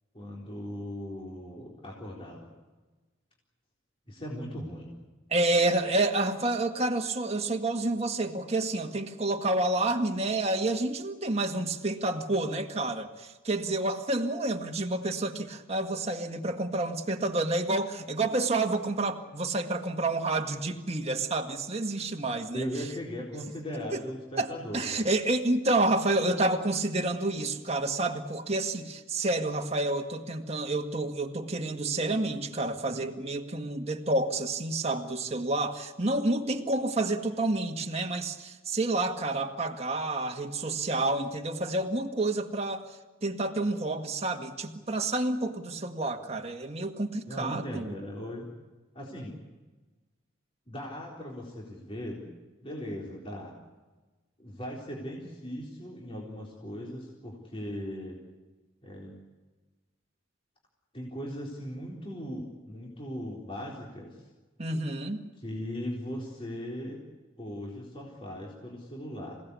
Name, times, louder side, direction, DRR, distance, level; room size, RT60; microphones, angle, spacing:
voice 1, 0.1-2.5 4.1-5.0 22.5-25.1 47.3-48.5 48.9-49.4 50.7-52.3 52.6-53.5 54.4-58.2 58.8-59.1 60.9-64.3 65.4-67.0 67.4-69.4, equal, 25° left, -3 dB, 4.0 m, -38 dB
voice 2, 5.3-22.7 23.9-24.0 24.4-24.5 24.7-42.8 43.2-47.9 64.6-65.2, right 2 dB, 30° right, 4 dB, 1.8 m, -29 dB
28.0 x 17.5 x 8.4 m, 1.2 s
head